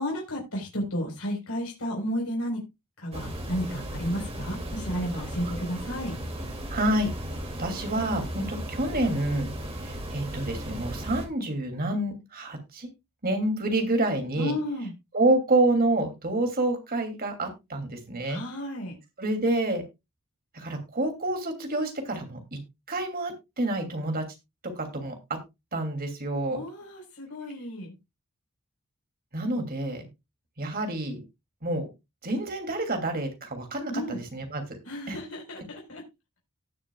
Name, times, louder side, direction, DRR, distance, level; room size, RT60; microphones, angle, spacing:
voice 1, 0.0-2.6 3.0-6.1 14.4-14.9 18.2-18.9 26.5-27.9 33.9-34.2 34.9-36.0, equal, 70° left, -1 dB, 4.3 m, -32 dB
Ambience Outdoors, 3.1-11.3, right 1 dB, 25° right, 2.5 m, -36 dB
voice 2, 6.7-7.1 7.6-9.5 9.8-12.9 13.2-14.6 15.1-18.4 19.2-19.8 20.5-22.6 22.9-24.2 24.8-25.1 25.7-26.6 29.3-30.0 30.6-31.2 31.6-31.9 32.2-34.8 35.1-35.2, right 2 dB, 40° right, 5 dB, 2.7 m, -28 dB
18.5 x 6.6 x 2.3 m, 0.23 s
head